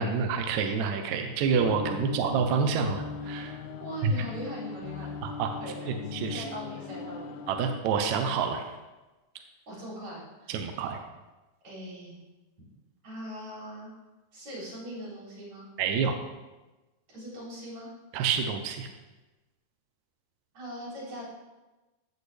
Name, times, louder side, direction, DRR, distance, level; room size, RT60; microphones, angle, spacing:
voice 1, 0.0-3.6 4.0-4.1 5.2-5.5 5.9-6.4 7.5-8.6 10.5-11.0 15.8-16.1 18.1-18.9, right 6 dB, 80° right, 5 dB, 1.6 m, -28 dB
sound 1, 1.5-7.8, left 5 dB, 90° left, 2.5 m, -39 dB
voice 2, 3.8-5.1 5.6-7.3 9.7-10.9 11.6-12.2 13.0-13.9 14.3-15.7 17.1-17.9 20.5-21.2, right 1 dB, 50° right, -6 dB, 4.7 m, -41 dB
15.0 x 6.7 x 3.3 m, 1.1 s
omnidirectional pair, 4.3 m